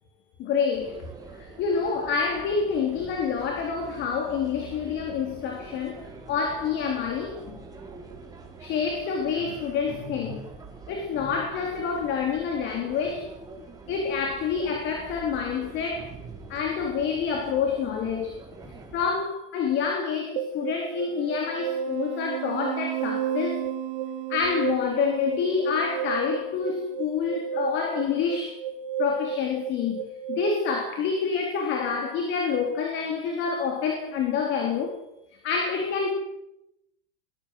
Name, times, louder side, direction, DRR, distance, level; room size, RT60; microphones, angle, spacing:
voice 1, 0.4-1.0 1.3-6.0 6.3-7.6 8.6-10.5 10.9-13.3 13.9-16.1 16.5-18.4 18.6-23.6 24.3-28.6 29.0-35.0 35.4-36.1, left 6 dB, 40° left, 3.9 m, -27 dB
sound 1, 0.7-19.1, right 3 dB, 10° right, 4.6 m, -45 dB
sound 2, 20.4-30.5, right 6 dB, 65° right, 2.2 m, -32 dB
23.5 x 21.0 x 7.9 m
supercardioid pair, 150°, 30 cm